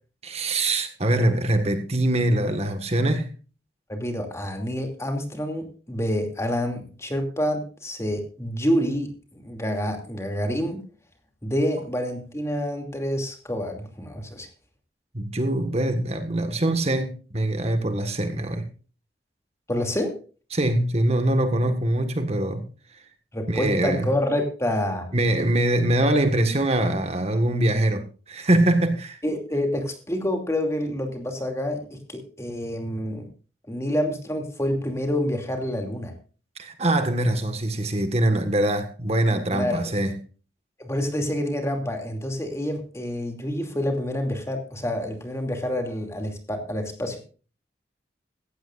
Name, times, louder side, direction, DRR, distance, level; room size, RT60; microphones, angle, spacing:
voice 1, 0.2-3.3 15.1-18.7 20.5-22.6 23.5-24.1 25.1-29.2 36.6-40.2, right 1 dB, 35° right, 1.6 m, -23 dB
voice 2, 3.9-10.8 11.4-14.5 19.7-20.2 23.3-25.1 29.2-33.2 33.7-36.1 39.5-39.9 40.8-47.2, left 1 dB, 15° left, 2.6 m, -27 dB
17.0 x 15.5 x 2.5 m
head